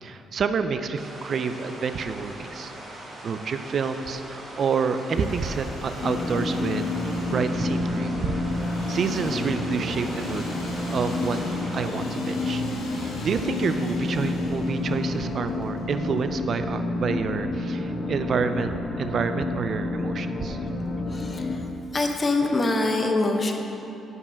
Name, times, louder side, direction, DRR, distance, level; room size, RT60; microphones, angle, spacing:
voice 1, 0.0-2.7 3.2-8.3 8.9-11.4 11.7-12.6 13.0-20.6, right 5 dB, 55° right, 9 dB, 0.4 m, -28 dB
sound 1, 1.0-11.9, right 1 dB, 35° right, 1.9 m, -41 dB
Engine / Sawing, 4.9-16.6, left 1 dB, 85° left, 1.8 m, -43 dB
sound 2, 6.0-21.6, left 2 dB, 60° left, 1.4 m, -29 dB
voice 2, 21.1-21.5 21.9-23.6, left 2 dB, 30° left, 4 dB, 0.9 m, -24 dB
7.2 x 5.4 x 6.9 m, 3.0 s
cardioid pair, 90°, 0 cm